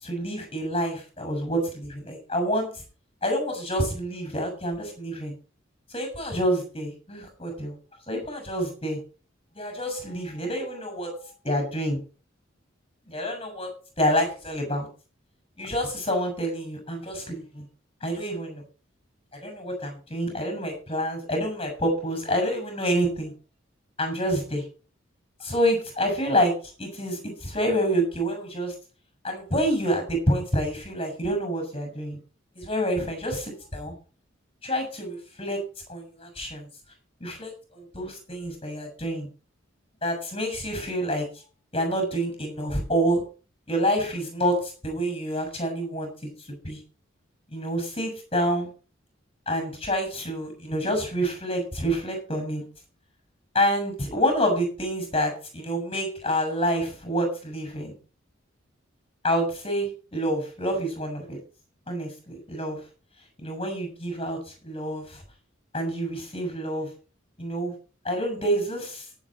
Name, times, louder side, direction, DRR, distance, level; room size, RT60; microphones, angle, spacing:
voice 1, 0.0-2.7 3.2-5.3 5.9-7.7 8.1-9.0 9.5-11.2 11.4-12.0 13.1-13.7 14.0-14.9 15.6-17.6 18.0-18.6 19.4-23.3 24.0-24.6 25.4-28.7 29.2-32.2 32.5-33.9 34.6-35.6 35.9-36.7 37.2-39.3 40.0-41.3 41.7-43.2 43.7-46.1 46.5-46.8 47.5-48.7 49.5-52.6 53.5-57.9 59.2-61.4 61.9-62.8 63.4-64.4 64.6-65.2 65.7-66.9 67.4-67.7 68.0-69.0, equal, 25° left, 5 dB, 6.7 m, -27 dB
17.5 x 7.7 x 4.5 m, 0.36 s
head